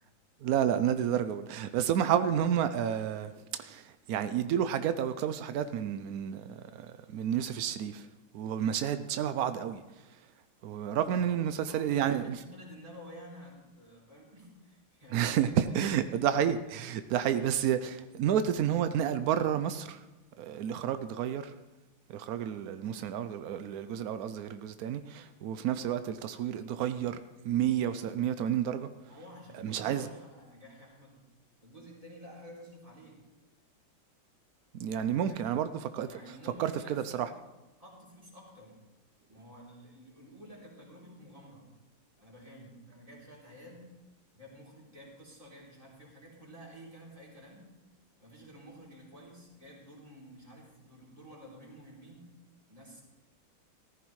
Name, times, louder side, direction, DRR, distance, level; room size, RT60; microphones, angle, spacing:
voice 1, 0.4-8.1 8.3-9.8 10.6-12.4 15.1-20.0 20.4-21.5 22.1-27.2 27.4-28.9 29.6-30.1 34.8-36.1 36.6-37.3, right 9 dB, 85° right, 0.8 m, -30 dB
voice 2, 11.2-15.7 29.1-31.2 31.6-33.2 35.0-35.5 36.0-37.3 37.8-38.8 39.3-41.7 42.2-43.9 44.3-47.7 48.2-52.3 52.7-53.0, equal, 15° right, 3.3 m, -51 dB
14.5 x 14.0 x 3.1 m
omnidirectional pair, 2.2 m